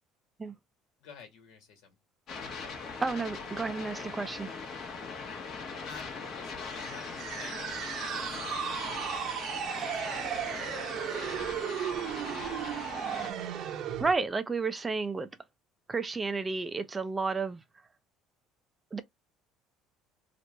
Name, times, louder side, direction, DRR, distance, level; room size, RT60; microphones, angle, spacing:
voice 1, 1.0-2.0 5.8-8.9 9.6-12.8, left 6 dB, 75° left, 1.6 m, -51 dB
sound 1, 2.3-13.3, left 4 dB, 50° left, 1.1 m, -41 dB
voice 2, 3.0-4.5 14.0-15.3 15.9-17.6 18.9-19.0, right 4 dB, 20° right, 0.4 m, -31 dB
sound 2, 6.7-14.1, right 9 dB, 55° right, 0.7 m, -35 dB
3.0 x 2.5 x 3.2 m
cardioid pair, 125°, 0 cm